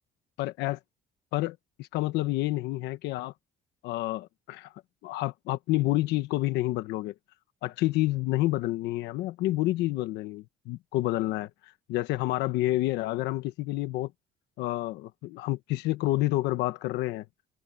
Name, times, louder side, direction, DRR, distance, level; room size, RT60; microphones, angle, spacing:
voice 1, 0.4-0.8 1.3-3.3 3.8-4.7 5.0-7.1 7.6-14.1 14.6-17.2, left 17 dB, 90° left, 1.1 m, -29 dB
open air
cardioid pair, 110°, 17 cm